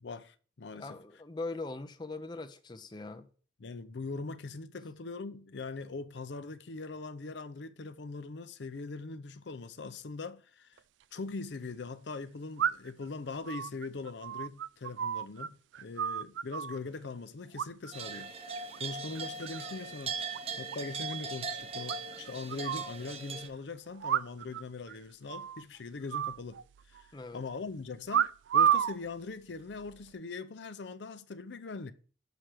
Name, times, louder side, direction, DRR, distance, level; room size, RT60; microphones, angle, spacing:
voice 1, 0.0-0.9 3.6-10.8 11.1-20.2 20.6-26.6 26.9-27.1 27.3-31.9, left 3 dB, 75° left, 0.5 m, -41 dB
voice 2, 0.7-3.3 27.1-27.4, left 3 dB, 25° left, 0.5 m, -41 dB
sound 1, 10.8-10.9 12.6-13.0 13.5-15.5 15.7-16.8 17.6-18.1 18.4-18.8 19.2-19.7 20.0-20.1 20.3-20.4 20.7-20.8 21.1-21.2 21.9-22.9 24.0-24.6 24.9-25.0 25.3-25.6 26.1-27.0 28.1-29.0 29.7-30.1, right 9 dB, 80° right, 0.3 m, -31 dB
sound 2, 17.9-23.5, right 5 dB, 30° right, 0.6 m, -39 dB
6.1 x 5.8 x 4.9 m
head